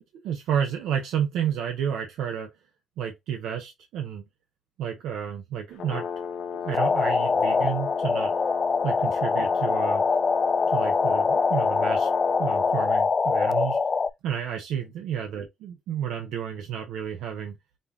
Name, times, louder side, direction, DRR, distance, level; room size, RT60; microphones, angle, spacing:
voice 1, 0.0-2.5 3.0-4.2 4.8-6.0 6.5-8.3 8.8-10.0 10.7-12.1 12.4-13.8 14.2-17.6, right 9 dB, 85° right, 0.7 m, -31 dB
Brass instrument, 5.7-12.9, left 7 dB, 80° left, 1.1 m, -35 dB
sound 1, 6.7-14.1, left 4 dB, 35° left, 0.3 m, -24 dB
5.3 x 2.4 x 2.7 m
cardioid pair, 90°, 0 cm